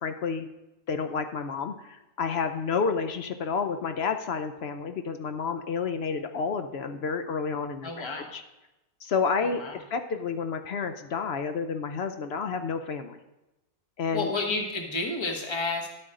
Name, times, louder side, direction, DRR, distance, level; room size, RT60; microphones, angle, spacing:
voice 1, 0.0-0.5 0.9-8.4 9.0-13.2 14.0-14.3, left 5 dB, 60° left, 8 dB, 0.7 m, -30 dB
voice 2, 7.8-8.3 9.4-9.8 14.1-15.9, left 3 dB, 20° left, 2 dB, 1.2 m, -31 dB
11.5 x 8.7 x 3.8 m, 0.98 s
omnidirectional pair, 1.6 m